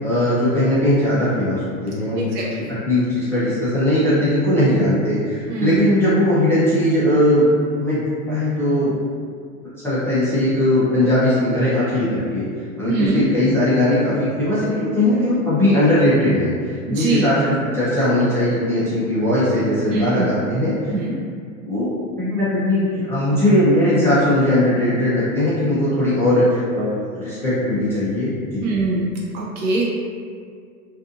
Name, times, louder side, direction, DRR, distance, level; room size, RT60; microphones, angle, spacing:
voice 1, 0.0-2.4 2.8-7.5 7.8-8.9 9.8-12.4 12.8-20.9 21.6-21.9 22.2-28.6, left 1 dB, 5° left, -13 dB, 0.4 m, -19 dB
voice 2, 2.1-2.8 5.5-5.8 12.8-13.2 16.9-17.3 19.9-20.2 20.9-21.2 28.6-29.1 29.3-29.8, right 3 dB, 40° right, -5 dB, 0.6 m, -23 dB
2.5 x 2.5 x 2.5 m, 2.1 s
hypercardioid pair, 115°, 42 cm